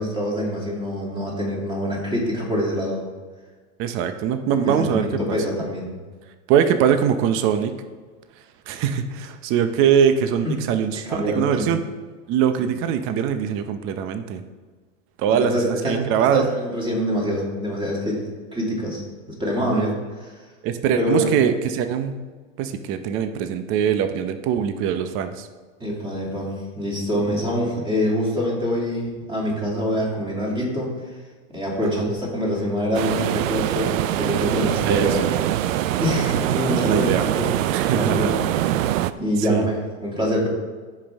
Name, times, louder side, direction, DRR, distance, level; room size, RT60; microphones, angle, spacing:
voice 1, 0.0-3.1 4.5-6.0 10.4-10.5 11.1-11.7 12.6-12.7 15.4-19.0 19.4-20.3 20.9-21.3 25.8-30.9 31.5-35.2 36.0-38.8 39.2-40.5, equal, 15° right, -3 dB, 2.5 m, -25 dB
voice 2, 3.8-5.4 6.5-7.8 8.7-11.8 12.3-14.4 15.2-16.5 19.7-19.9 20.6-22.2 22.6-25.5 27.3-27.5 31.8-32.1 34.9-35.3 36.7-37.2 37.7-38.3 39.4-39.7, right 8 dB, 35° right, 8 dB, 0.7 m, -22 dB
sound 1, 32.9-39.1, right 12 dB, 90° right, 0.6 m, -23 dB
15.5 x 5.5 x 3.5 m, 1.4 s
supercardioid pair, 145°, 38 cm